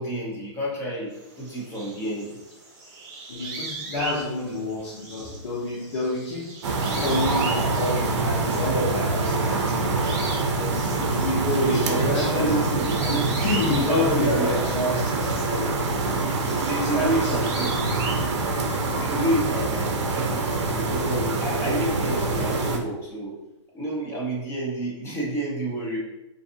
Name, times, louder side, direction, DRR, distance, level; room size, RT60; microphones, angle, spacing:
voice 1, 0.0-2.4 11.4-13.3 13.7-14.5 16.6-17.8 19.0-20.5 20.7-23.3 23.7-26.0, right 1 dB, 15° left, -4 dB, 0.7 m, -29 dB
sound 1, 1.1-8.8 9.1-18.3, right 3 dB, 25° right, 1.0 m, -39 dB
voice 2, 3.3-6.5 6.9-10.1 10.6-15.8 16.9-17.4, left 2 dB, 60° left, -5 dB, 0.8 m, -29 dB
sound 2, 6.6-22.8, right 3 dB, 70° right, 0.5 m, -25 dB
2.6 x 2.4 x 2.6 m, 0.93 s
hypercardioid pair, 145°, 15 cm